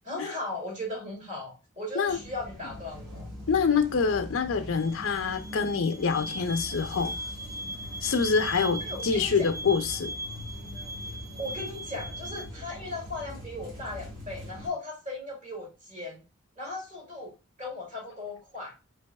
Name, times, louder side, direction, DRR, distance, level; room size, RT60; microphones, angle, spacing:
voice 1, 0.0-3.3 8.8-9.5 11.4-16.2 16.6-17.3 17.6-18.7, left 2 dB, 35° right, 1.6 m, -37 dB
sound 1, 2.0-14.7, equal, 70° right, 1.8 m, -42 dB
voice 2, 3.5-7.1 8.0-10.1, left 5 dB, 65° left, 0.5 m, -26 dB
sound 2, 4.7-12.5, right 1 dB, 15° right, 0.4 m, -39 dB
4.6 x 3.4 x 2.2 m
head